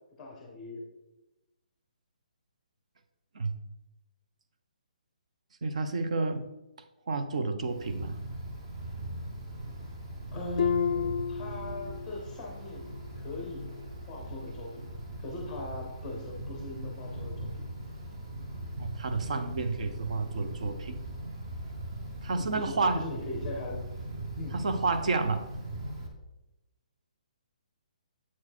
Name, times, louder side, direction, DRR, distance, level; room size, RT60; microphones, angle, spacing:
voice 1, 0.2-0.8 10.3-14.8 15.2-17.5 22.3-23.9 24.4-24.7, left 2 dB, 10° left, 0 dB, 0.8 m, -39 dB
voice 2, 5.6-6.4 7.1-8.2 18.7-21.0 22.2-23.0 24.5-25.5, right 3 dB, 55° right, 9 dB, 0.7 m, -30 dB
Wind, 7.7-26.1, right 1 dB, 30° right, 1.0 m, -40 dB
Harp, 10.6-12.3 12.7-13.1 13.7-13.8, left 7 dB, 50° left, 0.3 m, -31 dB
7.3 x 4.6 x 4.3 m, 0.99 s
hypercardioid pair, 175°, 4 cm